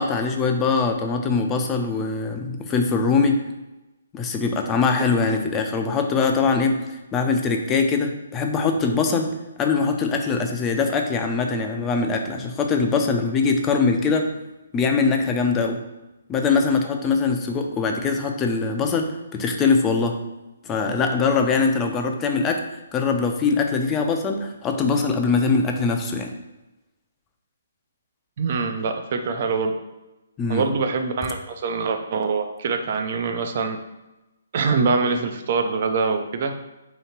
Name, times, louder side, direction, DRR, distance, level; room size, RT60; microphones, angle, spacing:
voice 1, 0.0-3.4 4.1-14.3 14.7-15.8 16.3-20.2 20.6-22.6 22.9-26.3 30.4-30.7, left 4 dB, 15° left, 3 dB, 0.4 m, -22 dB
voice 2, 28.4-29.7 30.5-33.8 34.5-36.5, right 4 dB, 50° right, 6 dB, 0.4 m, -24 dB
2.9 x 2.8 x 4.4 m, 1.0 s
figure-of-eight pair, 140°, 0 cm